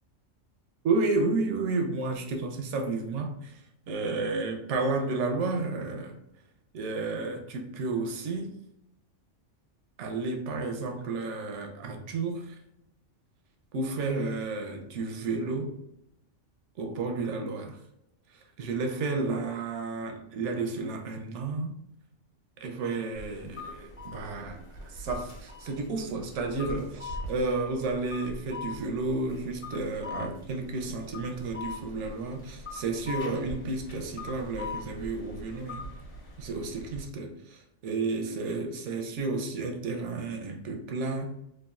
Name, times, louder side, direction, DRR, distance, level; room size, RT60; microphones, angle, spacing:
voice 1, 0.8-3.6 3.9-6.2 6.7-8.5 10.0-12.6 13.7-15.7 16.8-17.8 18.6-21.8 22.6-35.9 36.4-41.3, right 3 dB, 75° right, 0.9 m, -32 dB
sound 1, 23.1-37.1, left 3 dB, 50° left, 1.0 m, -42 dB
3.0 x 2.3 x 2.3 m
omnidirectional pair, 1.3 m